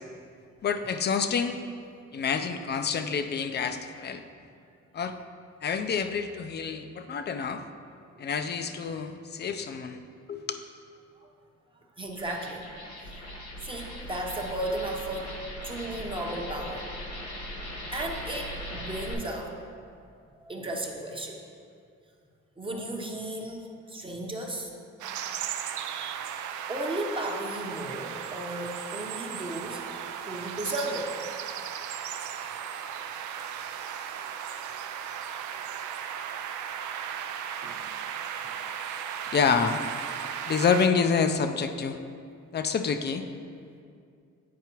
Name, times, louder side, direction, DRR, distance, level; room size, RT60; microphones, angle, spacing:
voice 1, 0.6-1.6 2.1-4.2 4.9-5.2 5.6-7.6 8.2-10.0 10.3-10.6 39.3-39.8 40.5-42.0 42.5-43.2, left 6 dB, 35° left, 8 dB, 0.4 m, -27 dB
sound 1, 12.0-19.1, equal, 65° left, 1.4 m, -40 dB
voice 2, 12.0-12.6 13.0-13.3 13.6-15.4 15.6-16.8 17.9-19.8 20.4-21.4 22.6-24.7 25.8-25.9 26.7-29.9 30.3-31.3 37.6-37.8 38.4-38.6, right 1 dB, 15° right, 0 dB, 0.8 m, -35 dB
sound 2, 25.0-40.9, right 8 dB, 75° right, 0.5 m, -36 dB
9.4 x 4.5 x 3.0 m, 2.4 s
cardioid pair, 90°, 30 cm